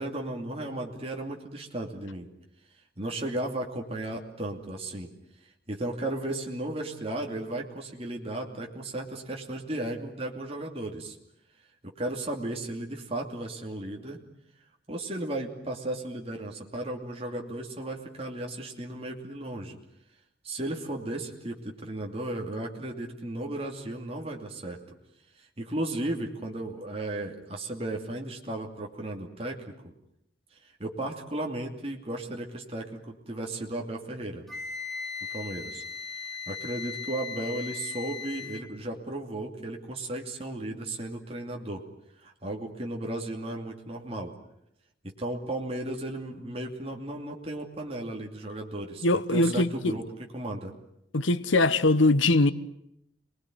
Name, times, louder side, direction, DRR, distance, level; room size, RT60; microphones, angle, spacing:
voice 1, 0.0-2.3 3.0-5.1 5.7-11.2 11.8-14.2 14.9-19.8 20.4-24.8 25.4-29.6 30.6-34.4 35.3-35.8 36.5-41.8 42.2-44.3 45.0-50.1 50.3-50.7, right 1 dB, 30° right, 2.7 m, -35 dB
Wind instrument woodwind instrument, 34.5-38.7, left 6 dB, ahead, 2.1 m, -38 dB
voice 2, 49.0-49.9 51.1-52.5, left 2 dB, 80° left, 1.1 m, -22 dB
28.0 x 20.5 x 9.4 m
head